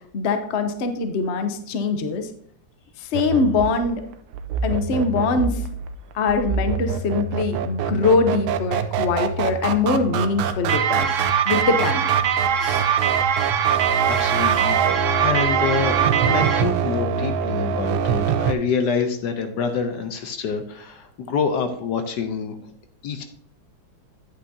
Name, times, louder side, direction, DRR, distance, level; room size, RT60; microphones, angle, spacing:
voice 1, 0.1-2.3 3.0-4.0 4.6-5.6 6.1-11.1 11.5-12.1 12.6-12.9, left 4 dB, 50° left, 7 dB, 0.9 m, -23 dB
sound 1, 3.1-18.5, right 6 dB, 90° right, 1.4 m, -25 dB
sound 2, 10.7-16.6, right 8 dB, 70° right, 0.7 m, -22 dB
voice 2, 14.1-22.5 23.0-23.2, left 6 dB, 70° left, 7 dB, 1.2 m, -26 dB
10.0 x 8.4 x 2.7 m, 0.64 s
omnidirectional pair, 2.1 m